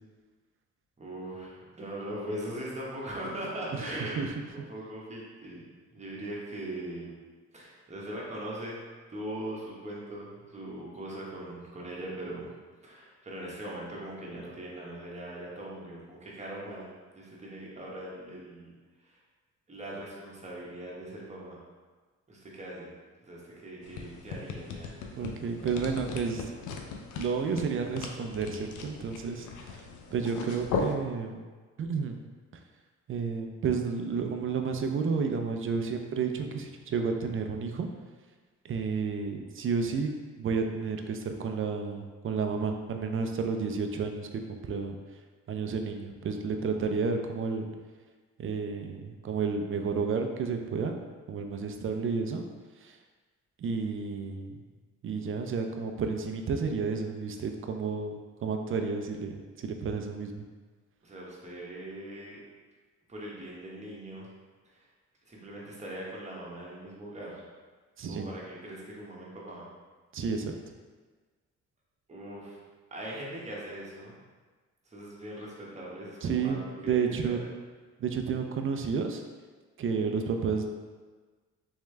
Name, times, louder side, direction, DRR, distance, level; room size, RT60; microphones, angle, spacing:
voice 1, 1.0-5.6 5.9-7.1 7.5-8.8 9.1-12.5 12.8-16.9 17.1-18.7 19.0-19.2 19.7-21.6 22.3-22.9 23.2-24.9 61.0-62.4 63.1-64.3 64.7-64.9 65.3-67.4 68.1-69.6 72.1-72.6 72.9-74.2 74.8-77.5, right 1 dB, 25° right, -5 dB, 1.1 m, -40 dB
sound 1, 23.8-30.9, left 4 dB, 85° left, 0.6 m, -38 dB
voice 2, 25.2-26.4 27.2-29.8 30.1-31.4 31.8-32.2 33.1-37.9 38.6-45.0 45.5-47.7 48.4-51.0 51.3-52.4 52.8-53.0 53.6-54.6 55.0-60.4 68.0-68.3 70.1-70.5 76.2-76.6 76.9-77.4 78.0-79.2 79.8-80.7, right 5 dB, 45° right, 5 dB, 0.5 m, -31 dB
3.6 x 3.2 x 3.3 m, 1.4 s
cardioid pair, 90°, 30 cm